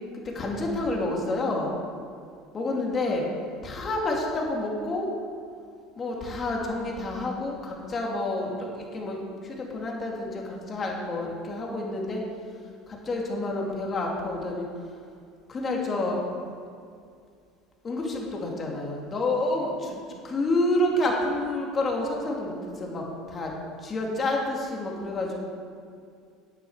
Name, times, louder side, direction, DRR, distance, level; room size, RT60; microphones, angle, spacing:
voice 1, 0.1-1.8 2.5-3.3 3.6-5.1 6.0-12.2 12.9-14.7 15.5-16.2 17.8-19.9 20.2-23.5 23.8-25.4, left 2 dB, 30° left, -1 dB, 2.5 m, -29 dB
10.5 x 9.0 x 5.0 m, 2.3 s
supercardioid pair, 95°, 0 cm